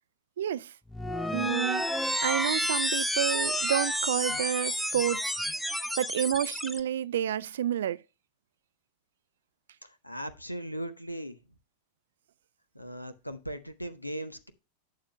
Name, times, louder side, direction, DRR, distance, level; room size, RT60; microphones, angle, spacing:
voice 1, 0.4-0.7 1.3-1.9 2.2-5.3 6.0-8.0, right 10 dB, 60° right, 0.4 m, -29 dB
sound 1, 0.9-6.8, equal, ahead, 0.6 m, -30 dB
voice 2, 2.2-2.6 9.8-11.4 12.7-14.5, right 1 dB, 85° left, 0.8 m, -39 dB
11.5 x 7.5 x 2.2 m
figure-of-eight pair, 90°, 0 cm